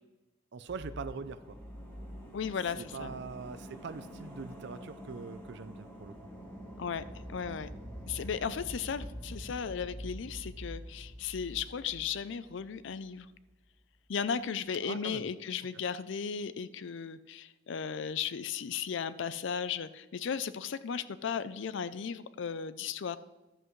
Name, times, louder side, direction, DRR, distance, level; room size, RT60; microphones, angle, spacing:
voice 1, 0.5-1.6 2.8-6.1 14.8-15.3 15.7-15.8, right 5 dB, 60° right, 13 dB, 0.4 m, -42 dB
sound 1, 0.7-13.1 13.4-13.5, equal, 10° left, 2.0 m, -46 dB
voice 2, 2.3-3.1 6.8-7.7 8.1-13.3 14.1-23.2, left 7 dB, 65° left, 15 dB, 0.4 m, -36 dB
12.0 x 7.9 x 3.2 m, 1.1 s
head